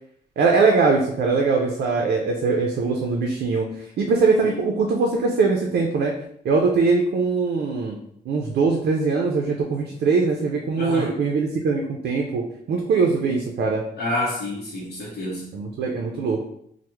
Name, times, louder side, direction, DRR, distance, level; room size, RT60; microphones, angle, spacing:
voice 1, 0.4-3.7 4.0-6.1 6.4-8.0 8.3-12.4 12.7-13.8 15.5-16.5, right 4 dB, 70° right, 1 dB, 0.4 m, -21 dB
voice 2, 10.8-11.1 14.0-15.5, left 1 dB, 70° left, -5 dB, 0.7 m, -28 dB
3.3 x 2.0 x 3.0 m, 0.71 s
wide cardioid pair, 175°, 17 cm